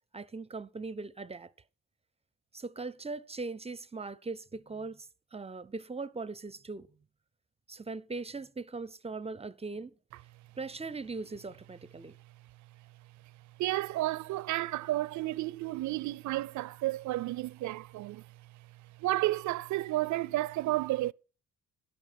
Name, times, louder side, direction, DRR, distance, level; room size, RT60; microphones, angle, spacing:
voice 1, 0.1-1.5 2.5-6.9 7.7-9.9 10.6-12.2, right 3 dB, 20° right, 0.5 m, -40 dB
voice 2, 13.6-18.2 19.0-21.1, right 16 dB, 70° right, 0.5 m, -31 dB
11.5 x 9.0 x 5.8 m
cardioid pair, 90°, 30 cm